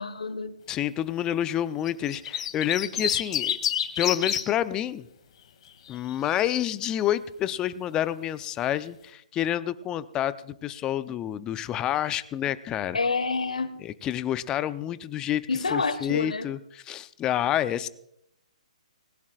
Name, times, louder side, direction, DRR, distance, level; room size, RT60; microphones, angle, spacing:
voice 1, 0.0-0.5 12.9-13.7 15.5-16.5, left 4 dB, 80° left, 1.4 m, -28 dB
voice 2, 0.7-3.6 4.0-5.1 5.9-13.0 13.8-15.4 15.7-17.9, left 11 dB, 20° left, 0.7 m, -28 dB
sound 1, 1.9-4.4 5.7-6.1, left 9 dB, 50° left, 2.4 m, -28 dB
20.0 x 19.0 x 2.5 m
figure-of-eight pair, 135°, 4 cm